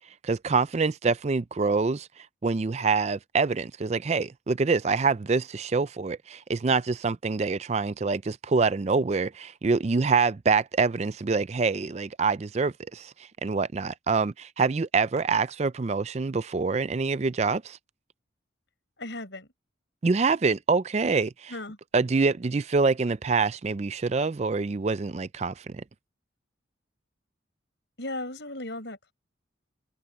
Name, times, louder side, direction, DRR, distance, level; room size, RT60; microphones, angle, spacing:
voice 1, 0.2-17.8 20.0-21.5 21.9-25.8, right 4 dB, 35° right, 0.4 m, -26 dB
voice 2, 19.0-19.5 21.5-21.8 28.0-29.1, left 2 dB, 65° left, 6.3 m, -36 dB
head